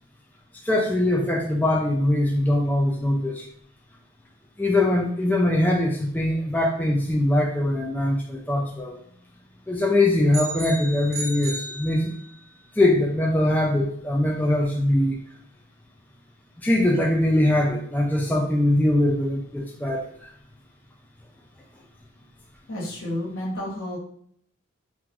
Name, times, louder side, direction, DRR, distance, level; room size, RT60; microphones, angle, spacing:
voice 1, 0.6-3.5 4.6-9.0 9.7-12.1 12.8-15.2 16.6-20.3, left 1 dB, 10° left, -1 dB, 0.3 m, -22 dB
sound 1, 10.3-12.5, right 2 dB, 60° right, 0.9 m, -35 dB
voice 2, 22.7-24.0, left 1 dB, 75° left, -5 dB, 1.4 m, -31 dB
2.9 x 2.5 x 3.6 m, 0.63 s
head